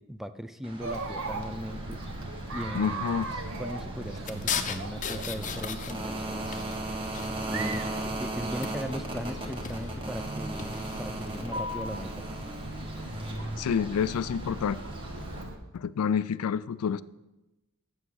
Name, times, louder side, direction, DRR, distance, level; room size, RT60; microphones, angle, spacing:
voice 1, 0.0-2.0 2.5-3.0 3.6-6.6 7.5-12.3, equal, ahead, 0.3 m, -38 dB
sound 1, 0.6-15.4, right 1 dB, 25° right, 1.5 m, -38 dB
Chatter, 0.8-15.6, right 2 dB, 60° right, 1.0 m, -39 dB
voice 2, 2.7-3.3 13.6-14.8 15.7-17.0, left 7 dB, 85° left, 0.4 m, -28 dB
sound 2, 4.3-6.2 6.5-7.8 8.6-9.0 9.5-9.9 10.6-11.0, left 7 dB, 35° left, 0.6 m, -36 dB
7.8 x 7.2 x 6.3 m
head